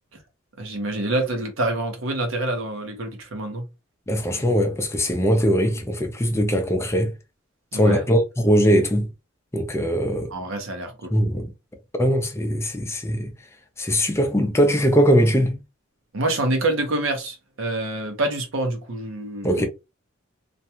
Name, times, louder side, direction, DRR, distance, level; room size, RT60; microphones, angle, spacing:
voice 1, 0.6-3.7 7.7-8.0 10.3-11.1 16.1-19.6, right 2 dB, 75° right, 0.8 m, -26 dB
voice 2, 4.1-7.1 7.7-9.1 9.5-10.3 11.1-11.5 12.0-13.3 13.8-15.6 19.4-19.6, equal, 15° left, 0.5 m, -21 dB
2.5 x 2.2 x 2.8 m
head